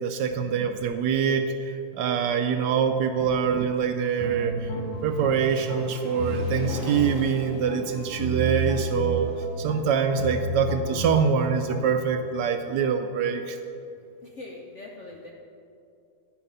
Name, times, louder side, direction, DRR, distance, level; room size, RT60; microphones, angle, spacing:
voice 1, 0.0-4.7 5.0-13.6, right 6 dB, 75° right, 8 dB, 1.1 m, -25 dB
sound 1, 4.2-12.1, equal, 90° left, 1.8 m, -32 dB
sound 2, 4.3-11.0, left 1 dB, 25° left, 2.2 m, -42 dB
voice 2, 14.2-15.3, left 2 dB, 60° left, -1 dB, 0.8 m, -42 dB
10.5 x 7.2 x 5.4 m, 2.6 s
omnidirectional pair, 2.1 m